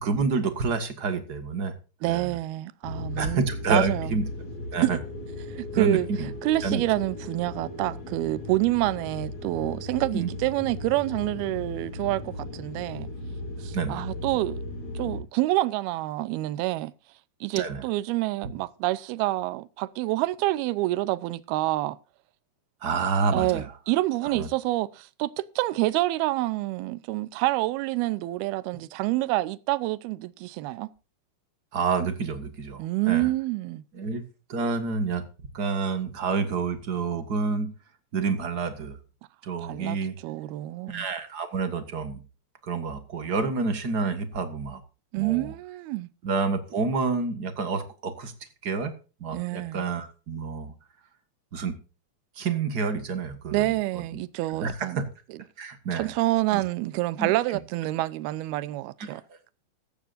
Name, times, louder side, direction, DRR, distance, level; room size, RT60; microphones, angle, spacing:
voice 1, 0.0-1.7 2.0-2.3 3.2-4.2 4.7-5.0 5.7-6.3 6.6-6.8 10.1-10.3 13.7-14.0 17.5-17.8 22.8-23.7 24.2-24.5 31.7-33.3 33.9-34.2 34.5-35.2 35.5-37.7 38.1-39.0 39.4-40.2 40.9-42.2 42.6-44.8 45.1-45.5 46.2-48.3 48.6-48.9 49.2-50.7 51.5-51.8 52.4-53.7 54.6-55.0 55.6-56.1 56.5-56.6 57.2-57.3 59.0-59.2, right 4 dB, 60° right, 1.0 m, -28 dB
voice 2, 2.0-4.1 4.8-5.0 5.5-6.1 6.4-13.1 13.6-14.6 15.0-16.9 17.4-22.0 23.3-30.9 32.8-33.8 39.6-40.0 40.2-41.1 45.1-46.1 49.3-49.9 53.5-55.0 55.9-59.2, right 18 dB, 80° right, 2.7 m, -27 dB
sound 1, 2.8-15.2, left 1 dB, 45° left, 4.2 m, -37 dB
16.0 x 14.5 x 2.6 m
omnidirectional pair, 4.5 m